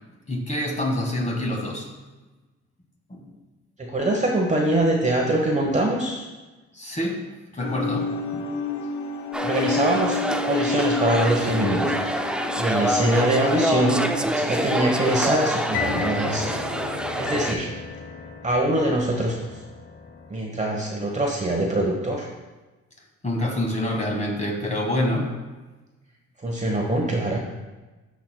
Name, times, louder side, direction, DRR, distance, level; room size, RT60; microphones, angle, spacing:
voice 1, 0.3-1.9 3.1-3.3 6.7-7.3 7.5-8.4 23.2-25.4, left 1 dB, 25° left, 0 dB, 1.7 m, -26 dB
voice 2, 3.9-6.3 9.4-10.2 10.5-12.2 12.6-16.5 17.2-17.7 18.4-19.5 20.3-22.3 26.4-27.4, right 1 dB, 25° right, -1 dB, 1.0 m, -23 dB
sound 1, 7.6-16.2, left 4 dB, 70° left, 0.8 m, -30 dB
sound 2, 9.3-17.5, right 1 dB, 5° right, 0.4 m, -27 dB
sound 3, 11.4-12.4 15.7-20.3, left 5 dB, 40° left, 0.9 m, -35 dB
13.5 x 4.7 x 2.2 m, 1.2 s
cardioid pair, 90°, 30 cm